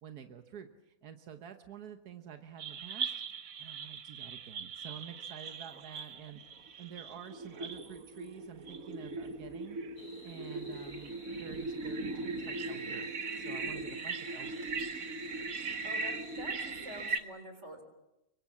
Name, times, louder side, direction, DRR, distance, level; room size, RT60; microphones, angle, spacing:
voice 1, 0.0-14.9, right 8 dB, 90° right, 6 dB, 1.6 m, -49 dB
sound 1, 2.6-17.2, right 3 dB, 65° right, 1.6 m, -39 dB
sound 2, 10.0-17.2, equal, 80° left, 4.0 m, -53 dB
voice 2, 15.8-17.8, equal, 50° right, 7 dB, 4.4 m, -47 dB
26.5 x 23.0 x 7.3 m, 0.90 s
omnidirectional pair, 1.6 m